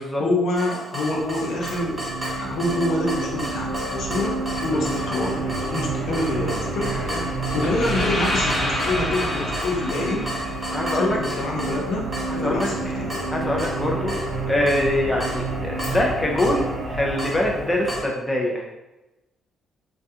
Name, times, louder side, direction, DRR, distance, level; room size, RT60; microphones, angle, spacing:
voice 1, 0.0-10.3 10.9-13.1, left 1 dB, 75° left, -1 dB, 0.5 m, -27 dB
Water tap faucet / Drip, 0.6-18.0, equal, 10° right, 1.0 m, -34 dB
sound 1, 1.0-18.0, right 3 dB, 55° right, 0.6 m, -30 dB
sound 2, 7.6-11.6, left 1 dB, 40° left, 0.8 m, -29 dB
voice 2, 10.7-11.2 12.3-12.7 13.3-14.1 14.5-18.7, left 1 dB, 15° left, -1 dB, 0.4 m, -24 dB
2.3 x 2.2 x 2.7 m, 1.0 s
cardioid pair, 90°, 0 cm